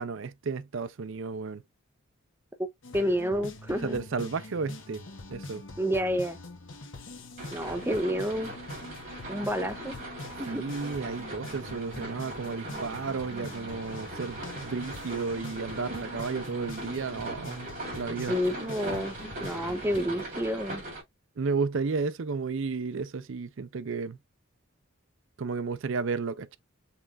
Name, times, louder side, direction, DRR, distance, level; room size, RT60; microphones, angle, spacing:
voice 1, 0.0-1.6 3.8-5.6 10.5-17.7 17.9-18.4 21.4-24.2 25.4-26.6, right 4 dB, 65° right, 0.5 m, -33 dB
sound 1, 2.8-20.2, left 2 dB, 60° left, 1.2 m, -44 dB
voice 2, 2.9-4.0 5.8-6.4 7.5-8.5 9.3-10.0 10.4-10.6 18.3-20.8, equal, 10° right, 0.8 m, -29 dB
sound 2, 7.4-21.0, right 1 dB, 40° right, 3.1 m, -40 dB
5.6 x 3.3 x 2.5 m
head